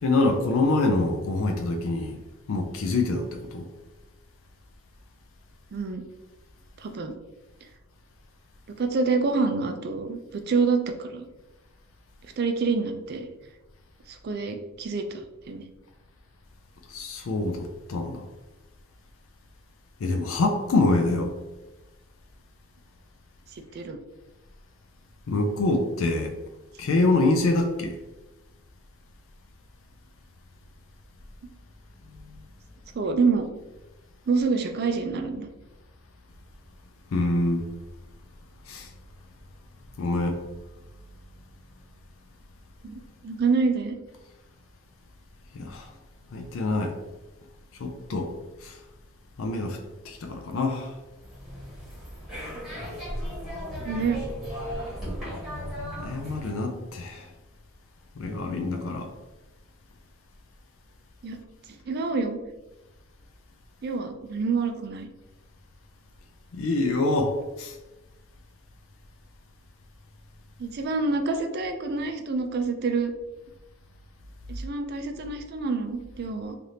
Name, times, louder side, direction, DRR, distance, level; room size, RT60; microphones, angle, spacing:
voice 1, 0.0-2.2 2.5-3.7 16.9-18.2 20.0-21.3 25.3-26.4 26.8-28.0 37.1-37.6 38.7-38.9 40.0-40.4 45.5-45.9 46.3-46.9 47.8-48.3 48.6-48.7 49.4-49.8 50.0-50.9 56.0-57.2 58.2-59.1 66.5-67.7, left 2 dB, 70° left, 0.4 m, -25 dB
voice 2, 5.7-6.0 6.8-7.1 8.8-11.3 12.4-13.3 14.1-15.1 15.5-15.6 23.7-24.0 32.9-33.5 34.3-35.5 42.8-44.0 53.8-54.2 61.2-61.4 61.9-62.4 63.8-65.1 70.6-73.1 74.5-76.5, right 4 dB, 50° right, 0.4 m, -27 dB
sound 1, 51.1-56.6, equal, ahead, 1.3 m, -36 dB
3.3 x 2.5 x 2.7 m
head